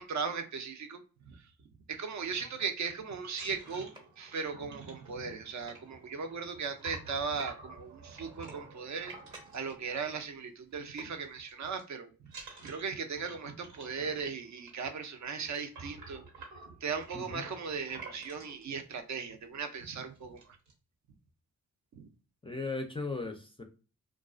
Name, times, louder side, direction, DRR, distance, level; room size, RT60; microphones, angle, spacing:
voice 1, 0.0-1.5 1.9-16.5 16.8-20.6 22.0-22.1, right 5 dB, 50° right, 0.5 m, -38 dB
sound 1, 3.3-10.4 10.7-11.0 11.2-11.8 12.3-18.6 19.3-19.4 19.7-19.9 20.1-20.7, right 3 dB, 80° right, 1.0 m, -50 dB
sound 2, 3.9-4.1 5.7-5.9 7.4-7.8 9.3-9.6 11.0-11.3, right 1 dB, 10° right, 0.7 m, -51 dB
voice 2, 22.4-23.6, left 3 dB, 15° left, 0.4 m, -37 dB
2.3 x 2.3 x 2.4 m
supercardioid pair, 50°, 37 cm